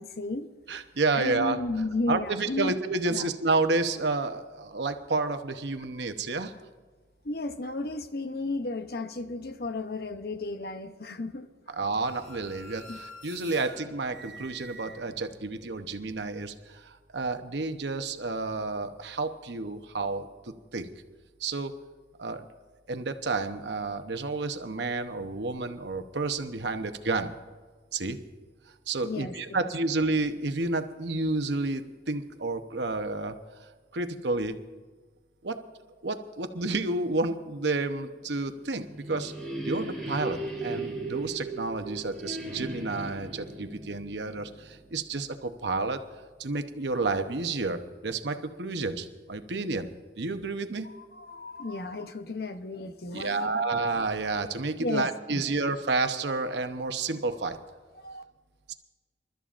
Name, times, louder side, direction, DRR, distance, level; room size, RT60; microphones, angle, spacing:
voice 1, 0.0-0.5 1.1-2.7 3.1-3.3 7.2-11.5 12.9-13.0 29.0-29.6 50.8-53.6 54.8-55.1 58.0-58.2, left 3 dB, 55° left, 0.8 m, -33 dB
voice 2, 0.7-1.6 2.1-6.5 11.8-20.3 20.7-20.9 21.4-21.7 22.2-22.5 22.9-27.3 27.9-28.2 28.9-33.4 33.9-34.5 35.4-35.6 36.0-39.3 39.6-46.0 46.4-49.9 50.2-50.9 53.1-57.6 58.7-58.8, right 3 dB, 70° right, 0.9 m, -30 dB
sound 1, 12.0-15.5, right 1 dB, 75° left, 5.3 m, -47 dB
sound 2, 38.6-45.2, right 2 dB, 5° left, 4.9 m, -37 dB
28.0 x 13.0 x 2.5 m
head